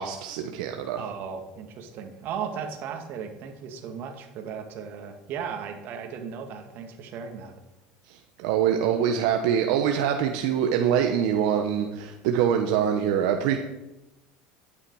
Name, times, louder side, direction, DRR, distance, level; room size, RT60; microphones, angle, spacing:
voice 1, 0.0-1.0 8.1-13.6, right 8 dB, 75° right, 4 dB, 1.0 m, -24 dB
voice 2, 1.0-7.5, right 7 dB, 55° right, 4 dB, 2.0 m, -36 dB
11.5 x 9.8 x 4.8 m, 0.98 s
supercardioid pair, 120°, 4 cm